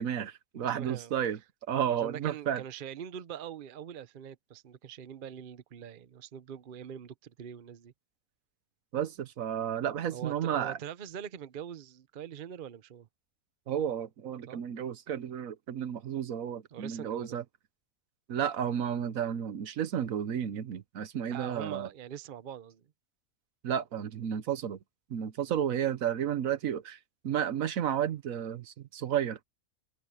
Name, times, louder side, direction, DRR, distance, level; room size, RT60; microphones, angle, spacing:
voice 1, 0.0-1.4 1.7-2.6 8.9-10.8 13.7-17.4 18.3-21.9 23.6-24.8 25.1-27.0 27.2-29.4, right 9 dB, 80° right, 1.3 m, -32 dB
voice 2, 0.5-1.1 1.8-7.9 10.1-13.1 14.5-14.6 16.7-17.4 21.3-22.9, right 9 dB, 45° right, 0.8 m, -43 dB
omnidirectional pair, 1.4 m